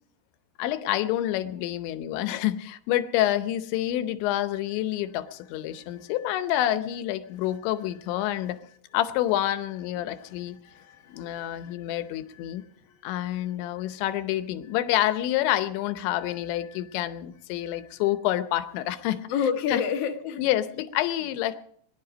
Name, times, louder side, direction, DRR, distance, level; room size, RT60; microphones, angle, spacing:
voice 1, 0.6-8.6 8.9-10.6 11.1-12.6 13.0-19.3 19.7-19.8 20.4-21.6, left 13 dB, 90° left, 11 dB, 3.2 m, -28 dB
voice 2, 5.7-6.2 7.4-7.6 8.3-8.6 10.0-13.0 13.4-14.0 16.1-16.9 17.6-18.0 19.3-20.4, left 7 dB, 50° left, 2 dB, 2.0 m, -34 dB
22.0 x 11.0 x 5.1 m, 0.64 s
omnidirectional pair, 5.1 m